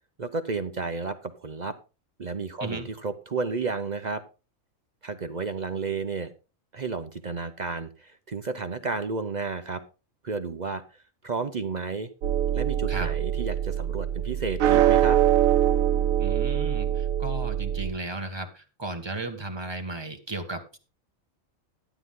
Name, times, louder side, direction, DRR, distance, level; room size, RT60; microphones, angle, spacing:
voice 1, 0.2-1.8 2.2-4.2 5.0-6.3 6.7-9.8 10.2-12.1 12.5-15.2, right 4 dB, 40° right, 10 dB, 0.7 m, -32 dB
sound 1, 12.2-17.9, right 11 dB, 80° right, 1.1 m, -23 dB
voice 2, 16.2-20.8, right 2 dB, 20° right, 5 dB, 1.6 m, -35 dB
12.0 x 9.5 x 3.7 m, 0.32 s
omnidirectional pair, 1.4 m